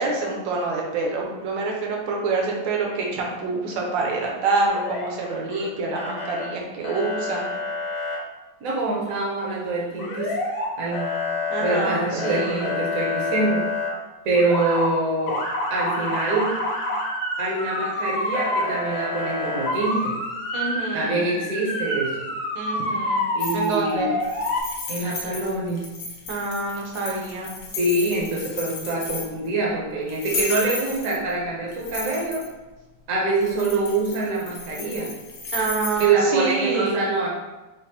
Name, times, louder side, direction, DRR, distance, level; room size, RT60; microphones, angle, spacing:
voice 1, 0.0-7.4 11.5-12.7 20.5-21.3 22.5-23.3 23.5-24.1 26.3-27.5 35.5-37.0, right 3 dB, 75° right, -1 dB, 1.4 m, -26 dB
Motor vehicle (road) / Siren, 4.7-5.6 5.9-6.5 6.8-8.2 10.0-10.7 10.9-13.9 14.3-14.9 15.3-24.6, left 2 dB, 85° left, 1.6 m, -28 dB
voice 2, 8.6-10.3 10.8-11.1 11.6-13.6 14.2-15.4 15.7-16.5 17.4-20.1 20.9-22.1 23.3-24.1 24.9-25.8 27.8-32.4 33.1-35.1 36.0-37.3, right 3 dB, 60° right, -3 dB, 1.0 m, -25 dB
sound 1, 23.4-23.9 24.2-29.5 30.1-31.3 31.7-32.5 33.4-36.1, left 3 dB, 70° left, 1.2 m, -34 dB
5.2 x 2.1 x 2.8 m, 1.1 s
omnidirectional pair, 2.1 m